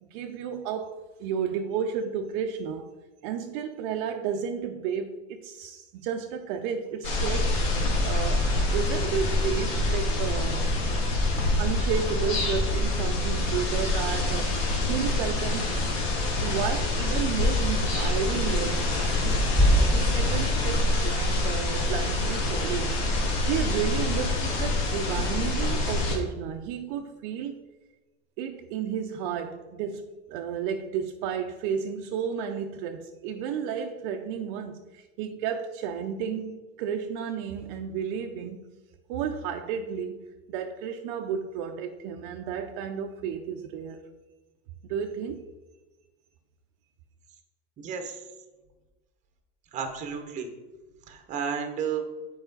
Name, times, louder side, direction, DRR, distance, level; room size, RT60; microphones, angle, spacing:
voice 1, 0.0-2.9 3.2-7.5 8.0-10.7 11.6-14.6 14.9-15.8 16.4-19.2 19.8-27.6 28.4-38.6 39.1-40.2 40.5-44.0 44.9-45.5, right 7 dB, 55° right, 5 dB, 0.5 m, -32 dB
sound 1, 7.0-26.2, left 2 dB, 80° left, 1.8 m, -26 dB
sound 2, 19.6-21.4, equal, 10° left, 2.1 m, -24 dB
voice 2, 47.8-48.2 49.7-50.5 51.1-52.0, right 7 dB, 25° right, 5 dB, 0.8 m, -32 dB
8.1 x 4.8 x 3.9 m, 1.2 s
cardioid pair, 175°, 30 cm